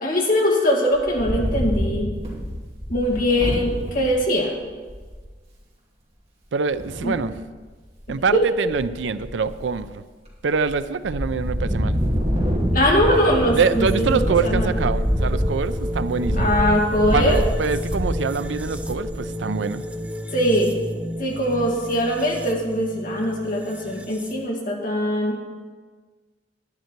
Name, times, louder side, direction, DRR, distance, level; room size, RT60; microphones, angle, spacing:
voice 1, 0.0-2.1 2.9-4.5 7.0-7.1 8.3-8.4 12.7-14.7 16.4-17.4 20.3-20.7 21.2-25.4, equal, 50° left, -1 dB, 2.2 m, -21 dB
Wind, 0.9-4.1 4.6-4.7 4.9-5.3 6.7-7.3 7.8-8.3 8.6-9.8 10.3-10.7 11.0-19.3, equal, 35° right, 3.0 m, -26 dB
voice 2, 6.5-7.4 8.1-10.0 10.4-12.0 13.0-13.2 13.5-16.5 17.1-19.8, right 5 dB, 85° right, 13 dB, 0.5 m, -24 dB
sound 1, 12.2-24.5, equal, 5° right, 0.5 m, -32 dB
10.5 x 10.0 x 4.5 m, 1.4 s
head